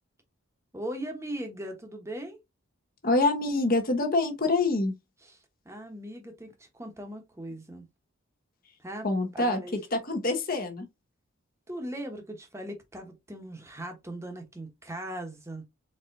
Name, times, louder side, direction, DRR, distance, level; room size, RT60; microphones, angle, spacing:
voice 1, 0.7-2.4 5.2-7.9 8.8-9.1 9.4-9.8 11.7-15.6, right 1 dB, 15° right, 1.0 m, -39 dB
voice 2, 3.0-4.9 9.0-9.6 9.9-10.9, left 2 dB, 40° left, 1.1 m, -25 dB
4.4 x 4.1 x 2.6 m
head